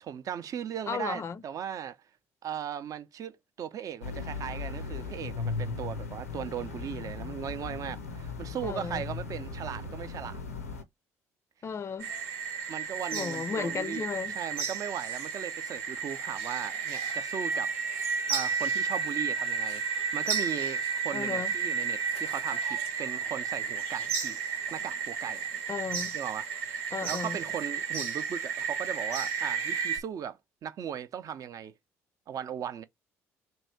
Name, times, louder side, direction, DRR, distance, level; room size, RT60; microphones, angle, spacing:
voice 1, 0.0-2.0 2.4-10.4 12.7-17.7 18.3-24.4 24.7-25.5 26.1-31.7 32.3-32.8, right 9 dB, 45° right, 0.6 m, -38 dB
voice 2, 0.9-1.4 8.6-9.0 11.6-12.1 13.1-14.3 21.1-21.5 25.7-26.2 26.9-27.4, left 6 dB, 35° left, 0.4 m, -34 dB
sound 1, 4.0-10.8, left 4 dB, 90° left, 0.5 m, -37 dB
sound 2, 12.0-30.0, right 6 dB, 75° right, 0.9 m, -32 dB
3.1 x 2.7 x 4.4 m
figure-of-eight pair, 50°, 8 cm